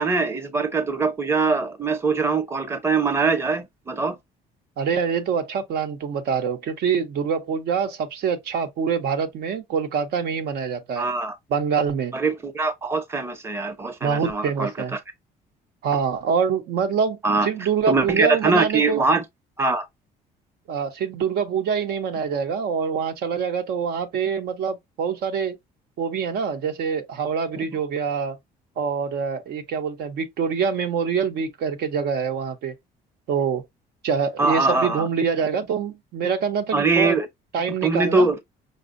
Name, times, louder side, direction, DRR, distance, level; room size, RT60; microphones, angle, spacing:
voice 1, 0.0-4.2 11.0-11.4 12.1-15.0 17.2-17.5 17.9-19.2 19.6-19.9 27.6-27.7 34.4-35.1 36.7-37.3 37.8-38.4, right 3 dB, 15° right, 0.7 m, -22 dB
voice 2, 4.8-11.1 11.5-12.1 14.0-15.0 15.8-19.0 20.7-25.6 26.0-28.4 28.8-32.7 33.3-33.6 34.0-37.2 37.5-38.3, right 6 dB, 70° right, 0.8 m, -25 dB
5.3 x 2.2 x 2.5 m
cardioid pair, 110°, 17 cm